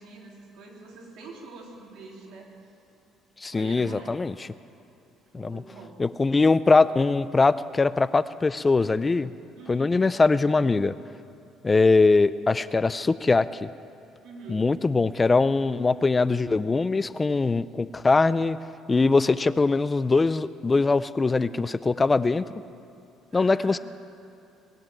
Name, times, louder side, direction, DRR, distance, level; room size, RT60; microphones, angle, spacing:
voice 1, 0.0-2.5 3.5-4.2 5.4-6.0 9.6-10.0 14.2-14.6 23.3-23.8, right 3 dB, 70° right, -2 dB, 3.3 m, -45 dB
voice 2, 3.4-4.3 5.3-5.6 6.0-9.3 9.7-10.9 11.6-13.7 14.5-18.6 18.9-22.4 23.3-23.8, left 3 dB, 20° left, 16 dB, 0.4 m, -22 dB
20.5 x 7.6 x 9.0 m, 2.8 s
cardioid pair, 120°, 0 cm